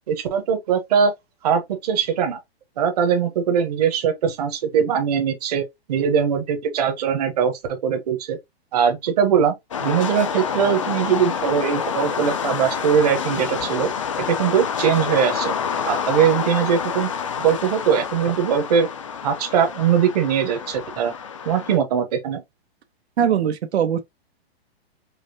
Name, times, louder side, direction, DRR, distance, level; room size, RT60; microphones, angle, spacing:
voice 1, 0.1-1.1 1.4-2.4 2.8-8.4 8.7-13.9 14.2-15.5 15.8-17.1 17.4-18.9 19.2-21.1 21.5-22.4, right 7 dB, 40° right, 1.0 m, -21 dB
sound 1, 9.7-21.8, left 7 dB, 30° left, 0.4 m, -28 dB
voice 2, 23.2-24.0, right 8 dB, 85° right, 0.9 m, -20 dB
5.0 x 2.1 x 2.8 m
hypercardioid pair, 175°, 32 cm